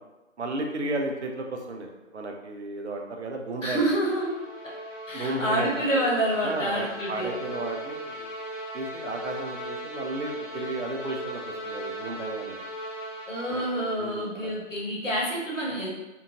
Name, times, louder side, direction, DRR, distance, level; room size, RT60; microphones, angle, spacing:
voice 1, 0.4-3.9 5.1-5.7 6.4-8.3 8.7-12.6 13.5-13.6 14.0-14.6, right 2 dB, 65° right, 3 dB, 0.6 m, -33 dB
sound 1, 3.5-14.1, right 1 dB, 20° right, 0.6 m, -38 dB
voice 2, 3.6-4.3 5.1-7.3 13.3-15.9, right 1 dB, 90° left, -4 dB, 1.1 m, -27 dB
2.7 x 2.4 x 2.7 m, 1.1 s
figure-of-eight pair, 135°, 37 cm